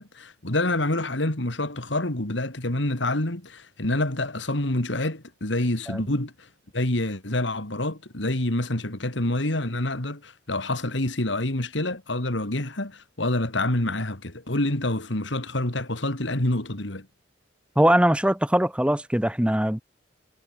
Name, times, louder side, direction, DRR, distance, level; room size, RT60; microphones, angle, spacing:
voice 1, 0.0-6.5 6.7-17.1, left 1 dB, 70° left, 2.8 m, -27 dB
voice 2, 17.8-19.8, right 1 dB, 5° right, 1.0 m, -21 dB
head